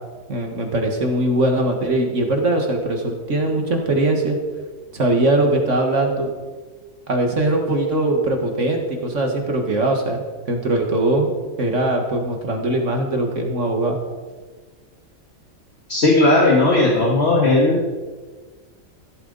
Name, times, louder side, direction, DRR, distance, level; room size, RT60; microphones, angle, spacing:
voice 1, 0.3-4.4 4.9-6.3 7.1-11.3 11.6-14.0, right 2 dB, 60° right, 3 dB, 1.8 m, -21 dB
voice 2, 15.9-17.8, left 2 dB, 50° left, -2 dB, 2.0 m, -16 dB
15.5 x 12.5 x 4.0 m, 1.4 s
omnidirectional pair, 1.4 m